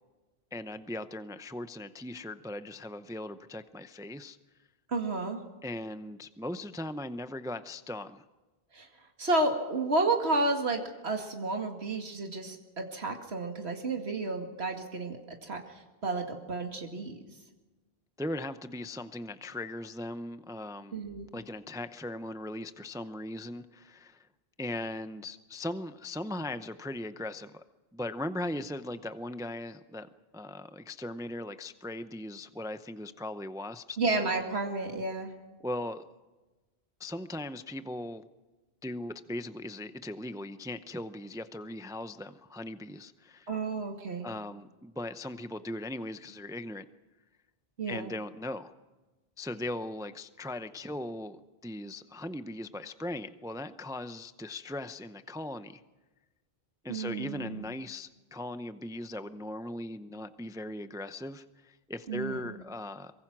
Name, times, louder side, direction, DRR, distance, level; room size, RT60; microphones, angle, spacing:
voice 1, 0.5-4.4 5.6-8.2 18.2-21.0 21.3-24.3 24.6-27.6 27.9-30.1 30.3-34.0 35.6-36.1 37.0-38.2 38.8-43.5 44.2-46.9 47.9-48.7 49.4-55.8 56.8-63.1, left 1 dB, 5° right, 10 dB, 0.6 m, -39 dB
voice 2, 4.9-5.4 8.7-8.9 9.2-15.6 16.0-17.2 20.9-21.3 34.0-35.3 43.5-44.3 47.8-48.1 56.9-57.7 62.1-62.5, right 2 dB, 85° right, 2 dB, 2.3 m, -31 dB
24.0 x 22.5 x 6.1 m, 1.2 s
omnidirectional pair, 1.0 m